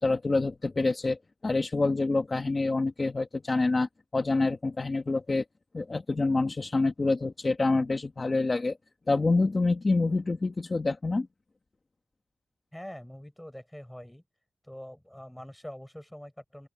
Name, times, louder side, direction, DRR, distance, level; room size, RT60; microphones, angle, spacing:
voice 1, 0.0-5.4 5.7-8.8 9.1-11.3, left 3 dB, 30° left, 1.5 m, -27 dB
voice 2, 12.7-14.2 14.6-16.7, equal, 5° left, 7.1 m, -44 dB
open air
wide cardioid pair, 150°, 0 cm